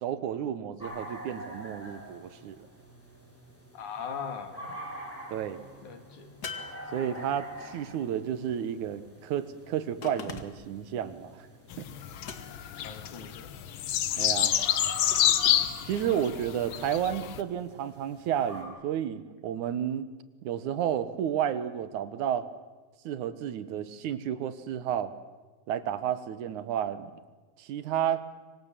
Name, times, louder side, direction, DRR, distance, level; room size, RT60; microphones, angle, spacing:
voice 1, 0.0-2.7 5.3-5.6 6.9-11.5 11.8-11.9 14.2-14.6 15.9-20.1 20.4-22.4 23.0-25.1 25.7-27.1 27.6-28.2, right 9 dB, 90° right, 13 dB, 2.7 m, -31 dB
sound 1, 0.8-18.6, right 1 dB, 5° left, 6.5 m, -46 dB
voice 2, 3.7-4.8 5.8-6.3 12.8-13.6, left 6 dB, 90° left, 6 dB, 3.9 m, -40 dB
sound 2, 6.4-7.5 10.0-10.8 12.2-12.8 15.1-15.8, left 5 dB, 40° left, 1.9 m, -42 dB
sound 3, 11.7-17.4, left 11 dB, 65° left, 1.3 m, -28 dB
25.5 x 24.5 x 7.6 m, 1.3 s
omnidirectional pair, 3.3 m